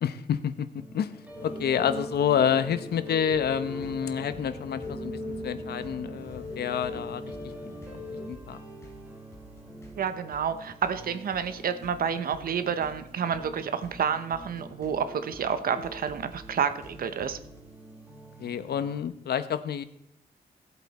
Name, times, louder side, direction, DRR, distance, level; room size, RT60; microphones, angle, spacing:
voice 1, 0.0-0.7 0.9-1.1 1.4-7.2 8.3-8.6 18.4-19.8, left 8 dB, 80° left, 11 dB, 0.9 m, -28 dB
sound 1, 0.8-19.0, right 1 dB, 10° right, 2.0 m, -48 dB
sound 2, 1.3-8.3, left 1 dB, 35° left, 3.7 m, -38 dB
sound 3, 3.3-17.6, right 1 dB, 15° left, 2.8 m, -51 dB
voice 2, 10.0-17.4, right 7 dB, 65° right, 10 dB, 0.9 m, -29 dB
17.0 x 8.1 x 4.2 m, 0.79 s
wide cardioid pair, 175°, 16 cm